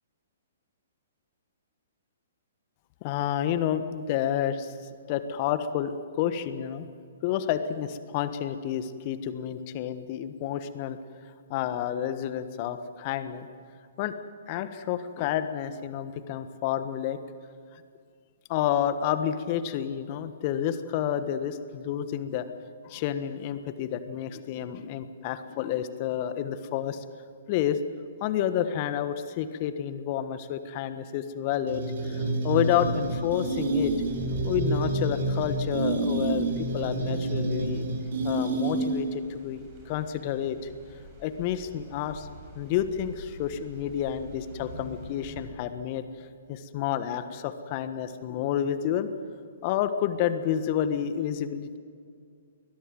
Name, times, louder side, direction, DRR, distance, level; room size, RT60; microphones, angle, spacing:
voice 1, 3.0-4.7 5.1-6.9 7.2-11.0 11.5-13.5 14.0-14.1 14.5-17.2 17.7-17.8 18.5-22.5 22.8-27.0 27.5-27.8 28.2-33.9 34.4-37.9 38.2-40.7 41.2-42.3 42.5-46.0 46.5-49.1 49.6-51.8, left 10 dB, 40° left, 11 dB, 1.3 m, -30 dB
sound 1, 31.7-39.2, right 2 dB, 55° right, 3.5 m, -28 dB
sound 2, 32.6-45.5, right 1 dB, 30° right, 7.9 m, -44 dB
21.5 x 21.0 x 7.7 m, 2.2 s
figure-of-eight pair, 120°, 0 cm